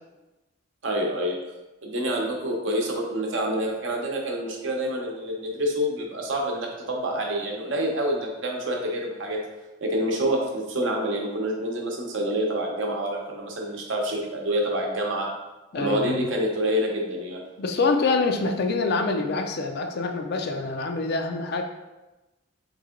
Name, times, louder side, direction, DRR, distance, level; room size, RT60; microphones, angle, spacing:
voice 1, 0.8-1.4 1.8-9.5 9.8-15.3 15.7-17.4, right 1 dB, 70° right, 0 dB, 0.8 m, -27 dB
voice 2, 15.7-16.3 17.6-21.6, left 3 dB, 55° left, 5 dB, 0.4 m, -25 dB
3.6 x 3.2 x 3.7 m, 1.1 s
head